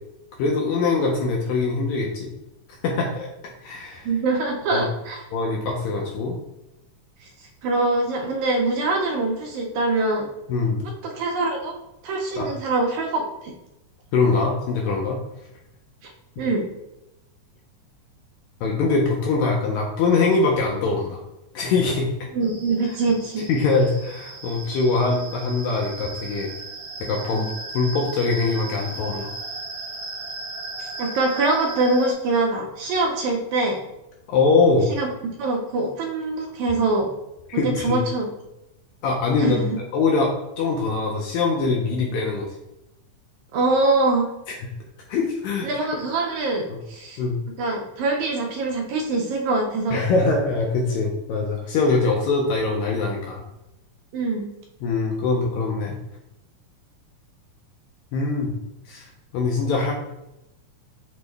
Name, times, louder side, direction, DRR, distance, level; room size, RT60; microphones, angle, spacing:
voice 1, 0.4-2.3 2.8-3.3 3.6-4.1 4.7-4.9 5.3-6.4 10.5-10.9 12.4-12.5 14.1-15.2 16.4-16.5 18.6-21.2 21.5-22.3 23.5-26.5 27.0-29.3 34.3-34.9 37.5-38.0 39.0-39.6 39.9-42.5 44.6-44.7 45.1-45.7 46.7-46.8 47.2-47.4 49.9-53.4 54.8-56.0 58.1-58.5 58.9-59.0 59.3-59.9, left 3 dB, 80° left, 0 dB, 1.7 m, -23 dB
voice 2, 4.1-5.3 7.2-7.3 7.6-10.3 11.0-11.8 12.0-13.5 16.0-16.1 16.4-16.7 22.3-23.5 30.8-33.8 34.9-35.1 35.4-37.1 37.5-38.3 39.4-39.8 43.5-44.3 45.6-47.2 47.6-50.0 54.1-54.5, right 2 dB, 80° right, 1 dB, 1.8 m, -24 dB
sound 1, 22.4-32.1, right 3 dB, 60° right, 1.6 m, -36 dB
6.1 x 2.1 x 3.3 m, 0.89 s
omnidirectional pair, 3.7 m